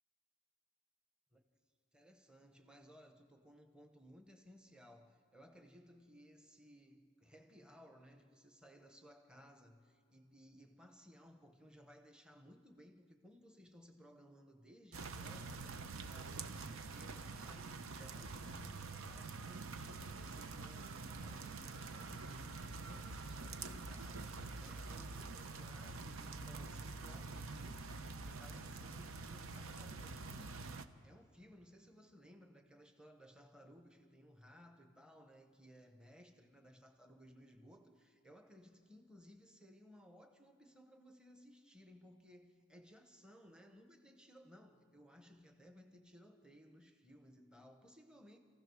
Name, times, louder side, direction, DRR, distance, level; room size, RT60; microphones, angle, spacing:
voice 1, 1.9-30.7 31.0-48.4, equal, 5° right, 0.9 m, -60 dB
sound 1, 14.9-30.9, right 3 dB, 80° right, 0.8 m, -46 dB
28.0 x 15.5 x 6.2 m
head